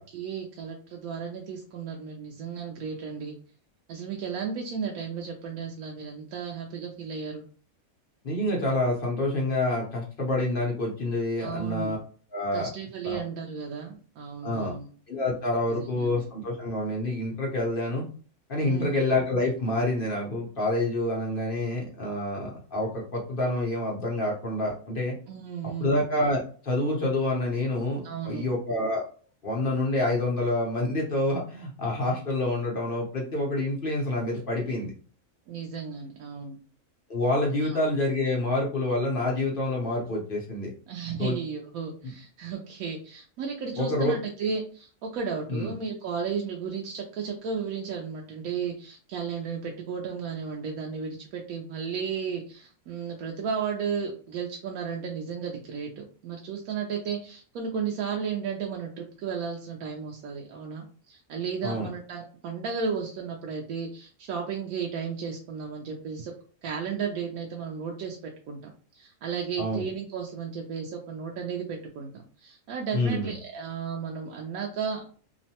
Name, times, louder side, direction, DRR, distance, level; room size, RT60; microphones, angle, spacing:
voice 1, 0.0-3.4 3.9-7.4 11.4-11.9 12.5-14.9 15.7-16.2 18.6-18.9 25.3-25.9 28.0-28.5 35.5-36.6 37.6-37.9 40.9-66.3 66.6-75.0, right 6 dB, 85° right, 0 dB, 1.0 m, -34 dB
voice 2, 8.2-12.0 12.3-12.7 13.0-13.2 14.4-14.7 15.1-18.0 18.5-25.2 25.8-29.0 29.4-34.9 37.1-40.7 41.2-41.3 42.0-42.1 43.8-44.1 45.5-45.7 61.6-61.9 69.6-69.8 72.9-73.3, left 1 dB, 45° left, -2 dB, 0.8 m, -27 dB
2.9 x 2.1 x 2.8 m, 0.41 s
omnidirectional pair, 1.5 m